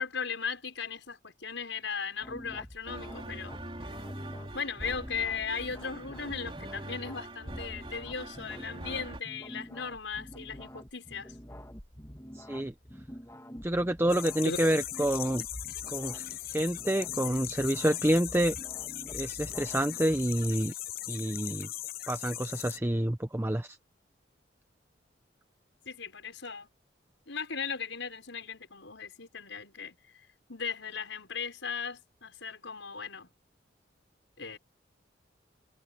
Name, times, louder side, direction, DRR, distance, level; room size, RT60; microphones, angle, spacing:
voice 1, 0.0-3.5 4.5-11.3 14.4-14.6 25.9-26.7 27.3-30.0 30.5-33.3 34.4-34.6, left 6 dB, 85° left, 5.9 m, -37 dB
sound 1, 2.2-20.5, equal, 15° left, 2.2 m, -48 dB
sound 2, 2.9-9.2, right 1 dB, 30° right, 3.4 m, -43 dB
voice 2, 12.3-12.7 13.6-15.4 15.9-18.6 19.1-20.7 21.1-21.7 22.1-23.8, right 1 dB, 10° right, 0.7 m, -28 dB
sound 3, 14.1-22.8, left 14 dB, 50° left, 0.7 m, -39 dB
head